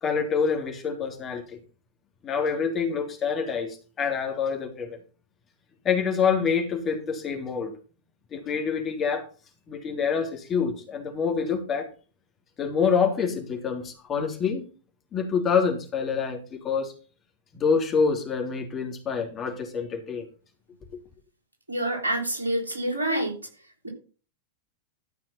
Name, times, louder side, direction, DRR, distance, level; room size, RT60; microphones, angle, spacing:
voice 1, 0.0-1.6 2.2-5.0 5.8-7.7 8.3-9.3 9.7-11.9 12.6-14.7 15.1-16.9 17.5-20.3, left 6 dB, 25° left, 3.0 m, -26 dB
voice 2, 21.7-23.4 23.8-23.9, right 1 dB, 80° right, 3.7 m, -27 dB
13.0 x 5.8 x 5.6 m
figure-of-eight pair, 90°, 0 cm